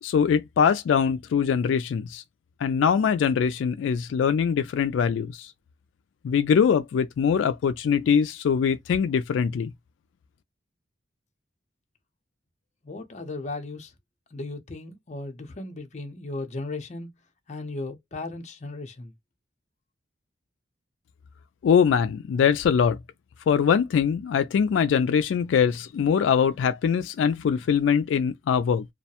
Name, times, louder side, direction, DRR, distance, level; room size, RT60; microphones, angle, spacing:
voice 1, 0.0-2.2 2.6-5.5 6.2-9.7 21.6-23.0 23.5-28.8, left 7 dB, 90° left, 0.3 m, -22 dB
voice 2, 12.8-13.9 14.3-17.1 17.5-19.1, left 2 dB, 40° left, 0.6 m, -36 dB
2.3 x 2.1 x 2.8 m
head